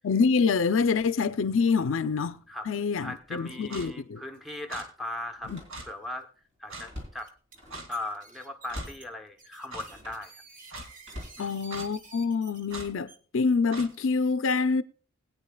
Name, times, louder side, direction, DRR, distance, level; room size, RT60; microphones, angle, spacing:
voice 1, 0.0-2.4 2.7-4.2 5.5-5.6 11.4-14.8, left 5 dB, 65° left, 0.5 m, -26 dB
voice 2, 2.5-5.5 5.9-6.3 6.6-7.4 7.9-10.4 11.4-11.5, left 1 dB, ahead, 0.8 m, -38 dB
sound 1, 3.2-3.4 3.7-3.8 4.3-4.6 5.4-5.5 6.0-6.1 7.0-7.6 7.9-13.2 13.9-14.3, right 4 dB, 40° right, 1.4 m, -51 dB
Slam, 3.2-3.4 3.9-4.0 5.3-6.1 6.5-8.0 8.7-9.1 9.8-10.3 11.0-12.1 12.7-13.0, left 1 dB, 60° right, 3.5 m, -45 dB
Clock, 3.7-3.9 4.7-4.9 5.7-5.9 6.7-6.9 7.7-7.9 8.7-8.9 9.7-9.9 10.7-10.9 11.7-11.9 12.7-12.9 13.7-13.9, right 2 dB, 85° right, 1.8 m, -40 dB
20.0 x 9.1 x 2.3 m
head